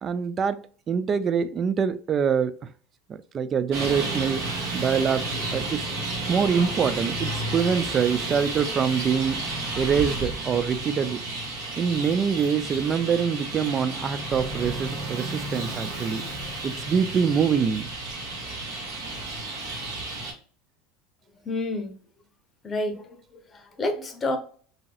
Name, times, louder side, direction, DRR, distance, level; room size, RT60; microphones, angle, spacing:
voice 1, 0.0-2.6 3.1-5.3 5.5-5.9 6.3-9.4 9.8-11.2 11.8-16.2 16.6-17.9, right 6 dB, 35° right, 0.3 m, -25 dB
Traffic noise roadway noise, 3.7-20.3, right 2 dB, 70° right, 1.0 m, -32 dB
voice 2, 21.4-21.9 22.6-24.4, left 2 dB, 25° left, 0.7 m, -29 dB
3.0 x 2.7 x 2.3 m
hypercardioid pair, 100°, 0 cm